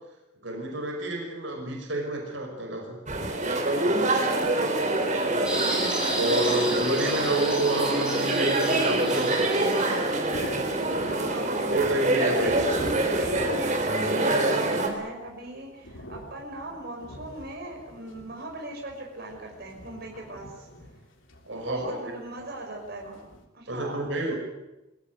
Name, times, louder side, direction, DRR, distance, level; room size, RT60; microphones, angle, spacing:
voice 1, 0.4-3.0 6.2-9.8 11.7-12.7 21.5-22.0 23.7-24.4, right 1 dB, 75° right, 2 dB, 5.7 m, -29 dB
sound 1, 3.1-14.9, right 2 dB, 40° right, 3.8 m, -25 dB
voice 2, 4.6-6.2 6.5-7.5 11.1-11.7 12.3-20.7 21.5-23.2 23.5-24.0, right 1 dB, 55° right, 0 dB, 5.6 m, -39 dB
sound 2, 5.4-10.0, right 1 dB, 5° right, 6.1 m, -33 dB
sound 3, 9.9-23.4, equal, 90° left, 3.5 m, -44 dB
23.0 x 17.0 x 9.5 m, 1.0 s
head